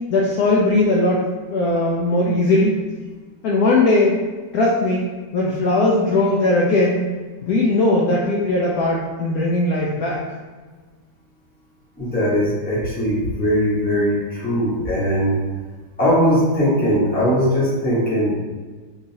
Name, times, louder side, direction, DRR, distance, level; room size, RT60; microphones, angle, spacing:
voice 1, 0.1-2.7 3.4-4.2 4.5-5.0 5.3-7.1 7.5-10.2, left 2 dB, 70° left, -4 dB, 0.9 m, -18 dB
voice 2, 12.0-15.4 16.0-18.3, equal, 5° left, -8 dB, 0.8 m, -20 dB
3.8 x 3.0 x 2.8 m, 1.4 s
omnidirectional pair, 1.9 m